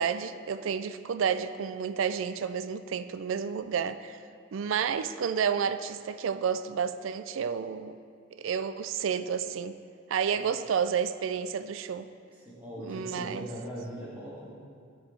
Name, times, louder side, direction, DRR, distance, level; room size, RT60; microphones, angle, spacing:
voice 1, 0.0-4.2 4.5-8.0 8.4-9.8 10.1-12.1 12.8-13.5, right 7 dB, 85° right, 12 dB, 0.4 m, -30 dB
voice 2, 12.4-14.5, equal, 10° right, -7 dB, 2.0 m, -40 dB
12.0 x 6.4 x 4.4 m, 2.3 s
head